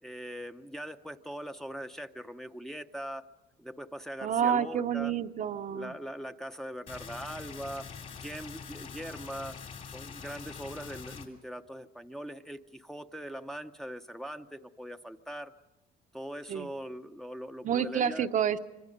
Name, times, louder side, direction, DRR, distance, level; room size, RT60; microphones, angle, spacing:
voice 1, 0.0-3.2 3.6-5.1 5.7-7.9 8.2-9.6 9.9-15.5 16.1-18.3, equal, ahead, 5 dB, 0.8 m, -41 dB
voice 2, 4.2-5.9 16.5-16.7 17.6-18.6, right 8 dB, 50° right, 8 dB, 0.8 m, -29 dB
sound 1, 6.9-11.3, left 6 dB, 50° left, 3.2 m, -44 dB
25.5 x 25.5 x 5.3 m, 1.0 s
cardioid pair, 110°, 17 cm